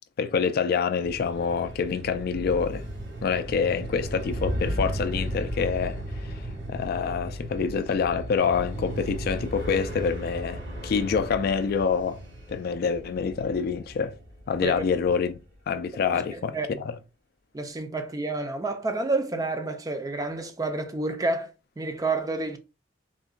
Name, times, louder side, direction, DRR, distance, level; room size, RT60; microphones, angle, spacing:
voice 1, 0.2-2.9 3.2-12.2 12.5-14.2 14.5-15.4 15.7-16.9, left 6 dB, 55° left, 0.3 m, -26 dB
sound 1, 1.0-15.1, equal, 70° right, 1.5 m, -35 dB
voice 2, 16.3-16.7 17.5-21.5 21.8-22.6, right 2 dB, 20° right, 0.4 m, -29 dB
3.7 x 2.2 x 2.4 m
head